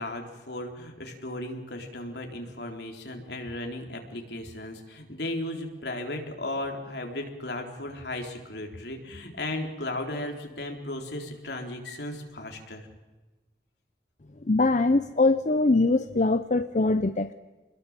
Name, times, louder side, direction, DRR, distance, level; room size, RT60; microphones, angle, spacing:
voice 1, 0.0-12.9, left 1 dB, 70° left, 3 dB, 4.0 m, -35 dB
voice 2, 14.4-17.3, left 2 dB, 45° left, 11 dB, 0.7 m, -22 dB
27.0 x 21.5 x 7.5 m, 1.2 s
head